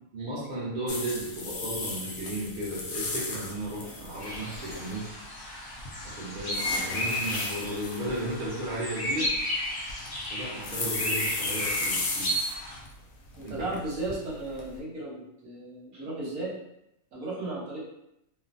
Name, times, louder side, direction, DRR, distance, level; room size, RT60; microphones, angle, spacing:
voice 1, 0.1-5.0 6.0-9.3 10.3-12.4 13.4-13.5, right 1 dB, 45° right, -5 dB, 0.8 m, -34 dB
sound 1, 0.9-5.2 5.8-12.9 13.3-14.8, left 3 dB, 75° left, 1.0 m, -35 dB
sound 2, 4.2-12.8, equal, 25° left, 0.5 m, -33 dB
voice 2, 13.4-16.5 17.1-17.8, right 2 dB, 80° right, -5 dB, 1.4 m, -35 dB
3.1 x 2.1 x 2.5 m, 0.80 s
omnidirectional pair, 1.5 m